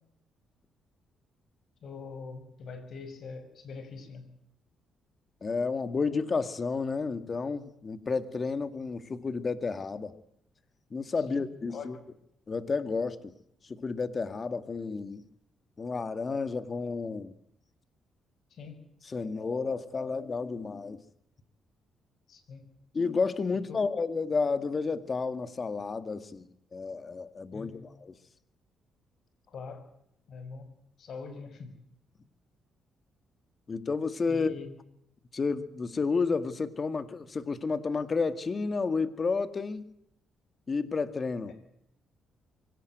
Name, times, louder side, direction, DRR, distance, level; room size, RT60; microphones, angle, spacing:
voice 1, 1.8-4.3 11.2-11.4 11.7-11.9 18.5-18.9 22.3-22.7 23.7-23.8 27.5-27.8 29.5-29.9 30.3-30.7 31.0-31.8 34.3-34.7, left 5 dB, 60° left, 6.2 m, -43 dB
voice 2, 5.4-10.2 10.9-12.0 12.5-13.3 13.6-15.2 15.8-17.3 19.0-21.0 22.9-28.1 33.7-34.6 35.3-39.9 40.7-41.5, left 4 dB, 35° left, 2.0 m, -31 dB
24.5 x 17.5 x 9.4 m
cardioid pair, 90°, 0 cm